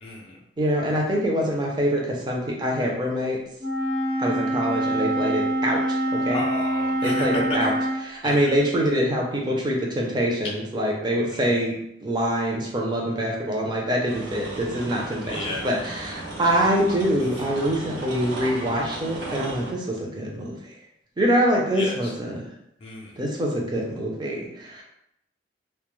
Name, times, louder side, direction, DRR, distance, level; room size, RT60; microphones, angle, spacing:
voice 1, 0.0-0.4 6.3-7.3 7.6-7.7 8.2-8.5 11.3-11.5 15.2-15.7 21.8-22.1 22.8-23.2, left 2 dB, 35° left, -3 dB, 0.4 m, -33 dB
voice 2, 0.6-3.4 4.2-6.4 7.0-7.7 8.0-20.8 21.2-22.4 23.2-24.8, equal, 25° right, -1 dB, 0.5 m, -25 dB
Wind instrument woodwind instrument, 3.6-8.0, right 1 dB, 55° right, 0.8 m, -25 dB
sound 1, 14.1-19.7, right 2 dB, 90° right, 0.5 m, -36 dB
2.1 x 2.0 x 3.0 m, 0.78 s
head